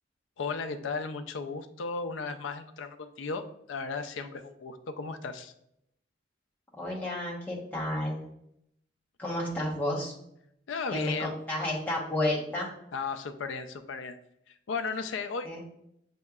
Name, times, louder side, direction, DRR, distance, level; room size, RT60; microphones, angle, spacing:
voice 1, 0.4-5.5 10.7-11.3 12.9-14.2 14.5-15.6, left 4 dB, 80° left, 8 dB, 0.4 m, -35 dB
voice 2, 6.8-8.3 9.2-10.1 10.9-12.7 15.4-15.6, left 1 dB, 10° left, -5 dB, 0.9 m, -31 dB
6.3 x 2.8 x 2.3 m, 0.76 s
head